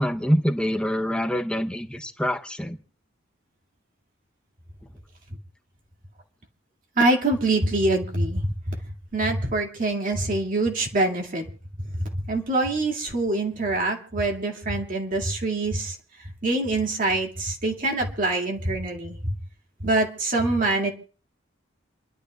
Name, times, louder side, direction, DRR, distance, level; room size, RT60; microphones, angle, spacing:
voice 1, 0.0-2.8, equal, 5° left, 5 dB, 0.8 m, -25 dB
voice 2, 7.0-8.8 9.1-11.4 12.3-16.0 16.4-19.3 19.8-20.9, right 2 dB, 45° right, 1 dB, 2.2 m, -24 dB
29.0 x 12.0 x 2.3 m, 0.41 s
head